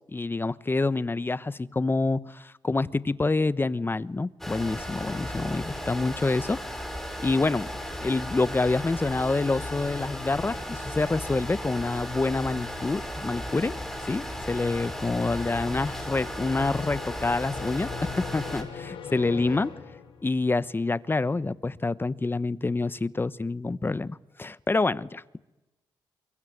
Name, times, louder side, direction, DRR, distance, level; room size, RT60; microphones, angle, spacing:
voice 1, 0.1-6.6 7.2-7.7 8.0-13.7 14.0-17.9 18.3-19.7 20.2-25.4, left 3 dB, 25° left, 16 dB, 1.1 m, -27 dB
sound 1, 4.4-18.6, equal, 5° left, 6.5 m, -36 dB
sound 2, 7.8-20.5, left 8 dB, 85° left, 3.7 m, -44 dB
24.5 x 22.5 x 9.7 m, 1.0 s
cardioid pair, 70°, 9 cm